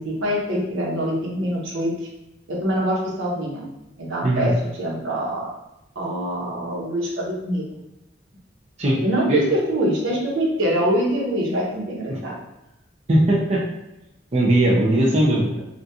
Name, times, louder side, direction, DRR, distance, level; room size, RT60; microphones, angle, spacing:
voice 1, 0.0-1.9 2.5-3.6 4.0-5.5 5.9-7.6 9.0-12.3, equal, 85° right, -4 dB, 1.0 m, -24 dB
voice 2, 13.1-13.6 14.3-15.6, right 1 dB, 35° right, -4 dB, 0.5 m, -19 dB
3.5 x 2.4 x 2.7 m, 0.90 s
head